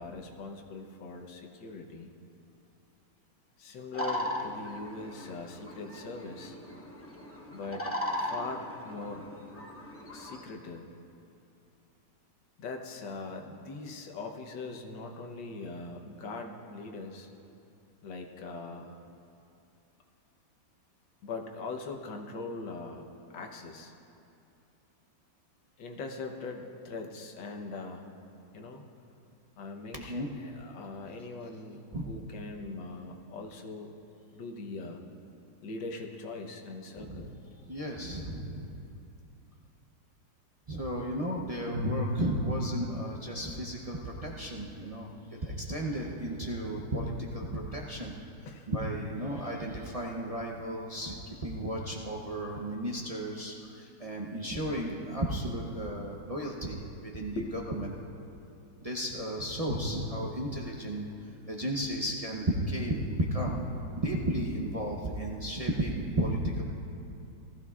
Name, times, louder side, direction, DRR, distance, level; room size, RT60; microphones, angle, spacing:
voice 1, 0.0-2.1 3.6-6.6 7.5-7.8 8.2-9.3 10.1-10.8 12.6-17.3 18.0-19.0 21.2-23.0 23.3-23.9 25.8-28.1 28.5-28.8 29.6-34.0 34.3-35.0 35.6-37.3 48.4-48.7 57.3-57.7, left 3 dB, 90° left, 2 dB, 1.7 m, -41 dB
sound 1, 3.9-10.4, left 1 dB, 15° left, 0.6 m, -38 dB
voice 2, 30.0-30.3 31.9-32.0 37.0-37.4 37.7-38.7 40.7-48.1 48.7-57.4 57.7-57.9 58.8-61.1 61.5-63.6 64.0-66.6, right 1 dB, 35° right, -2 dB, 0.6 m, -33 dB
18.5 x 14.5 x 2.4 m, 2.7 s
omnidirectional pair, 1.9 m